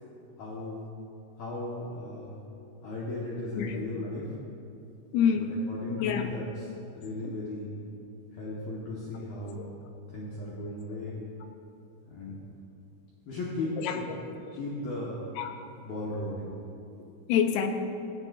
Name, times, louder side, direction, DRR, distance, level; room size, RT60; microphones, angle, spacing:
voice 1, 0.4-0.9 1.4-2.4 2.8-4.3 5.7-6.4 6.9-7.8 8.3-9.7 10.1-11.2 12.1-12.3 13.3-14.0 14.5-15.2 15.8-16.5, left 2 dB, 60° left, -6 dB, 2.7 m, -36 dB
voice 2, 3.6-3.9 5.1-5.5 6.0-6.4 7.2-7.3 9.6-9.7 10.9-11.0 13.8-14.2 15.4-15.5 17.3-17.7, left 8 dB, 80° left, 5 dB, 3.5 m, -27 dB
17.0 x 16.5 x 2.7 m, 2.7 s
omnidirectional pair, 5.8 m